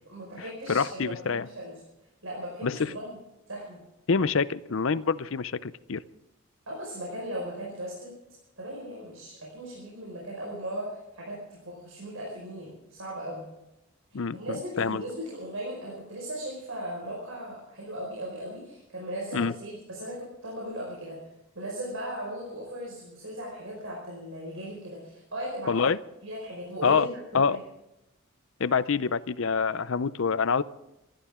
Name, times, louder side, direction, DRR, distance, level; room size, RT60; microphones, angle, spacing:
voice 1, 0.1-1.7 2.2-3.2 3.5-3.8 6.7-8.2 8.6-13.5 14.1-21.2 21.6-25.9 26.2-27.6, equal, 70° right, -3 dB, 5.2 m, -37 dB
voice 2, 0.7-1.5 2.6-2.9 4.1-6.0 14.1-15.0 19.3-19.5 25.7-26.0 26.8-27.1 27.3-27.6 28.6-30.6, left 5 dB, 65° left, 16 dB, 0.6 m, -26 dB
27.0 x 13.0 x 3.7 m, 0.94 s
head